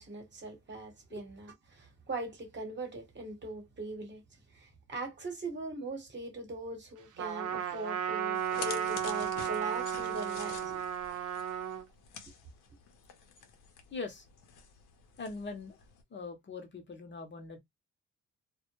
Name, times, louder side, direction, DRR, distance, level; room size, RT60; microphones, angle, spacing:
voice 1, 0.0-4.2 4.5-10.9, right 2 dB, 35° right, 1.0 m, -41 dB
Trumpet, 7.2-11.8, right 9 dB, 85° right, 0.6 m, -34 dB
sound 1, 8.3-16.0, left 6 dB, 80° left, 0.7 m, -48 dB
voice 2, 13.9-14.2 15.2-15.8 16.1-17.6, left 4 dB, 40° left, 0.7 m, -41 dB
2.1 x 2.1 x 2.9 m
cardioid pair, 90°, 30 cm